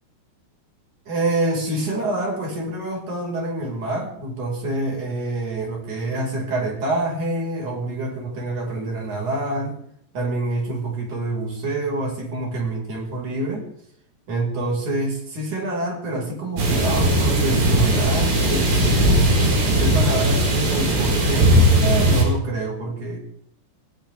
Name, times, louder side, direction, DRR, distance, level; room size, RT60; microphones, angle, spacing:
voice 1, 1.1-9.7 10.1-13.7 14.3-19.2 19.6-23.2, right 2 dB, 45° right, -1 dB, 6.5 m, -27 dB
sound 1, 16.6-22.2, right 1 dB, 75° right, 7.1 m, -18 dB
20.0 x 19.0 x 3.6 m, 0.67 s
omnidirectional pair, 5.0 m